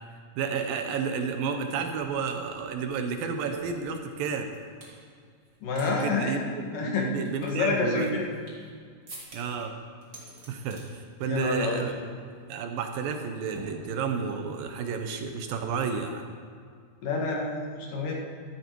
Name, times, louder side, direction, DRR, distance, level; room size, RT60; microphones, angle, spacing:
voice 1, 0.1-4.5 5.9-8.2 9.3-9.8 10.5-11.9 12.5-16.2, right 6 dB, 75° right, 5 dB, 2.5 m, -31 dB
sound 1, 1.7-1.8 2.0-5.0 5.4-5.9 6.1-6.2 6.8-8.7 9.1-9.6 10.0-10.9 11.2-11.5 11.8-12.0 12.3-12.6 13.5-14.3, right 2 dB, 30° right, 3.4 m, -47 dB
voice 2, 5.6-6.4 6.7-7.1 7.4-8.3 11.3-12.0 17.0-18.1, left 4 dB, 65° left, -1 dB, 3.3 m, -28 dB
14.5 x 14.0 x 4.7 m, 2.1 s
omnidirectional pair, 4.4 m